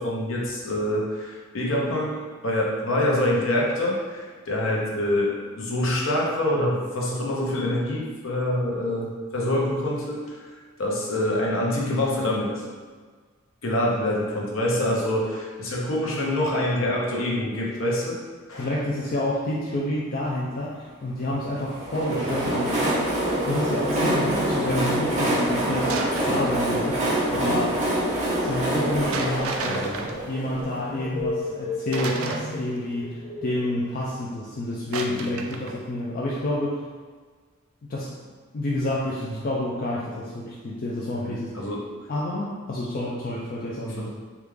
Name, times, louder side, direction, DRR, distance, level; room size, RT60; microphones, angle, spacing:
voice 1, 0.0-12.6 13.6-18.2 18.5-18.7 29.7-30.1 35.1-35.3 39.2-39.4 41.2-41.9 44.0-44.1, left 1 dB, 65° left, -3 dB, 0.7 m, -26 dB
voice 2, 18.5-27.8 28.4-29.9 30.3-36.8 37.9-38.2 38.5-41.6 42.1-44.1, left 1 dB, 40° left, -5 dB, 0.3 m, -29 dB
Train, 21.6-31.3, right 1 dB, 35° right, 0.7 m, -26 dB
sound 1, 22.9-34.2, left 1 dB, 90° left, 1.3 m, -36 dB
sound 2, 25.9-26.7 29.1-30.8 31.9-32.9 34.9-35.7, right 4 dB, 75° right, 0.4 m, -32 dB
3.4 x 2.4 x 3.1 m, 1.5 s
head